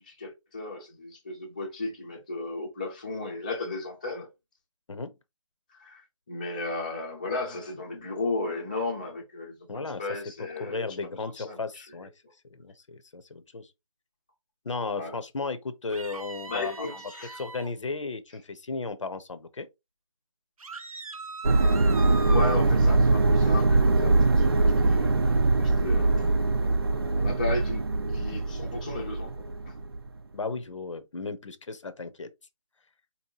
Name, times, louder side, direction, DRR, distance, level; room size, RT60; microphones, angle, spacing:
voice 1, 0.0-4.3 5.7-10.9 11.4-11.8 14.9-15.2 16.5-17.4 22.3-29.7, left 2 dB, 15° left, 0.5 m, -35 dB
voice 2, 9.7-10.2 10.6-12.1 12.5-13.7 14.6-17.0 17.4-19.7 30.3-32.3, left 4 dB, 60° left, 0.6 m, -35 dB
sound 1, 15.9-17.7 20.6-22.7, right 3 dB, 85° right, 0.6 m, -39 dB
sound 2, 21.4-30.0, right 3 dB, 45° right, 0.5 m, -23 dB
4.2 x 2.8 x 2.8 m
figure-of-eight pair, 170°, 18 cm